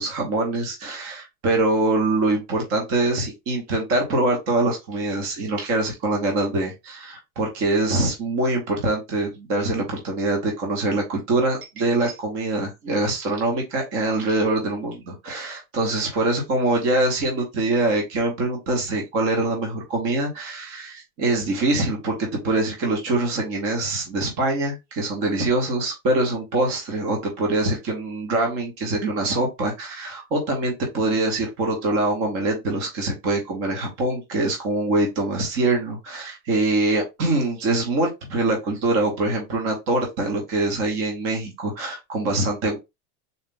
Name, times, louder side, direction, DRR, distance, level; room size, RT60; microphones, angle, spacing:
voice 1, 0.0-42.8, right 2 dB, 30° right, 1 dB, 1.0 m, -24 dB
4.0 x 2.4 x 3.7 m, 0.22 s
supercardioid pair, 170°, 45 cm